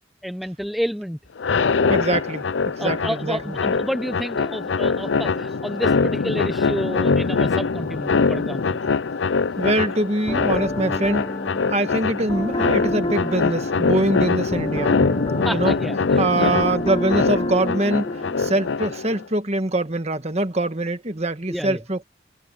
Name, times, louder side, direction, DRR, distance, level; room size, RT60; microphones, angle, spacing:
voice 1, 0.2-1.2 2.8-8.8 15.4-16.6 17.2-17.3 21.5-21.8, equal, ahead, 0.8 m, -30 dB
sound 1, 1.4-19.2, left 4 dB, 80° left, 0.6 m, -23 dB
voice 2, 1.9-3.6 9.6-11.3 11.7-15.0 15.5-15.7 16.2-18.1 18.4-22.0, right 1 dB, 35° right, 1.6 m, -23 dB
sound 2, 10.2-18.8, left 1 dB, 30° left, 4.0 m, -29 dB
head